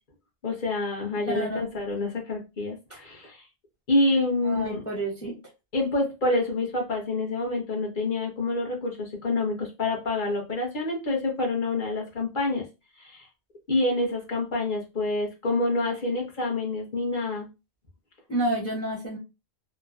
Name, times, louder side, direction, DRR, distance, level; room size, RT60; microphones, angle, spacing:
voice 1, 0.4-3.4 3.9-4.8 5.7-12.7 13.0-13.3 13.7-17.5, left 2 dB, 50° left, 0 dB, 1.1 m, -27 dB
voice 2, 1.3-1.6 4.4-5.3 18.3-19.2, right 1 dB, 15° left, 0 dB, 0.6 m, -29 dB
2.9 x 2.2 x 2.4 m, 0.27 s
omnidirectional pair, 1.1 m